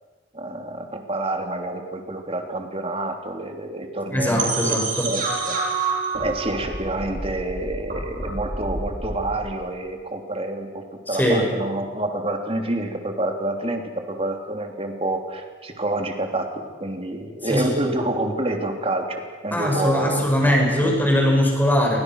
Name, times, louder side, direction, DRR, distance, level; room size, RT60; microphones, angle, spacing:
voice 1, 0.3-5.6 6.2-19.2 19.4-20.5 20.8-20.9, right 2 dB, 30° right, 4 dB, 3.0 m, -28 dB
voice 2, 4.1-5.1 11.1-11.4 17.4-17.7 19.5-22.0, equal, 10° left, -1 dB, 6.7 m, -21 dB
sound 1, 4.4-9.3, right 4 dB, 45° right, 6.0 m, -28 dB
29.5 x 24.5 x 6.4 m, 1.4 s
head